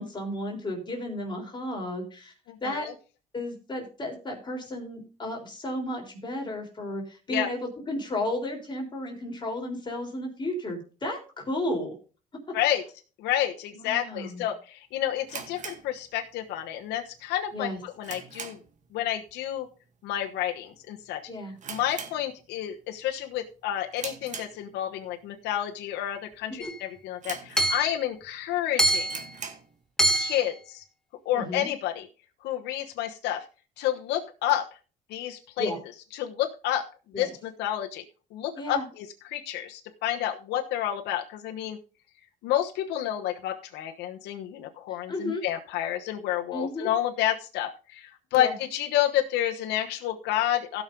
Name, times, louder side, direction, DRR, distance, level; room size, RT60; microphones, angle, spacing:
voice 1, 0.0-2.3 2.6-2.9 3.3-11.9 13.7-14.5 17.5-17.8 21.3-21.6 26.5-26.7 31.3-31.7 35.6-35.8 37.1-37.3 38.6-38.8 44.9-45.4 46.5-46.9 48.3-48.5, left 1 dB, 25° left, 1 dB, 3.8 m, -33 dB
voice 2, 2.5-2.9 7.3-7.5 12.5-12.8 13.2-18.6 18.9-19.7 20.0-21.2 21.7-29.1 30.2-30.8 31.2-32.1 32.4-33.4 33.8-34.7 35.1-35.7 36.1-36.8 37.1-38.0 38.3-41.8 42.4-50.8, left 12 dB, 85° left, 3 dB, 1.1 m, -30 dB
sound 1, 15.2-16.6 16.9-17.0 17.5-18.9 19.1-19.4 19.7-19.8 20.5-20.8 21.1-21.2 21.6-22.7 23.1-23.4 23.9-25.0 25.6-25.7 26.3-26.4 26.7-26.8 27.2-28.2 28.5-28.6 29.0-29.7, right 6 dB, 45° right, 2.0 m, -41 dB
Hammer / Chink clink, 26.6-26.7 27.6-27.9 28.8-29.3 30.0-30.5, right 1 dB, 5° left, 1.1 m, -24 dB
16.0 x 6.2 x 3.8 m, 0.35 s
cardioid pair, 110°, 17 cm